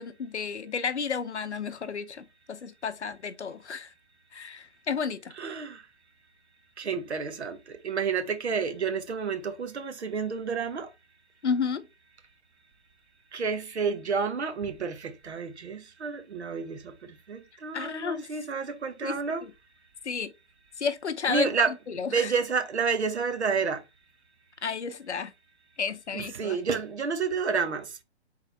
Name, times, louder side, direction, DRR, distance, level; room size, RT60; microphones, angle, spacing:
voice 1, 0.0-3.9 4.3-5.3 11.4-11.8 17.7-18.3 19.0-19.5 20.0-20.3 20.8-21.5 22.0-22.3 24.6-25.3 25.8-26.6, left 6 dB, 85° left, 0.7 m, -32 dB
voice 2, 5.4-5.9 6.8-10.9 13.3-19.4 21.3-23.8 26.1-28.0, right 5 dB, 75° right, 0.9 m, -30 dB
3.7 x 3.3 x 3.3 m
figure-of-eight pair, 125°, 33 cm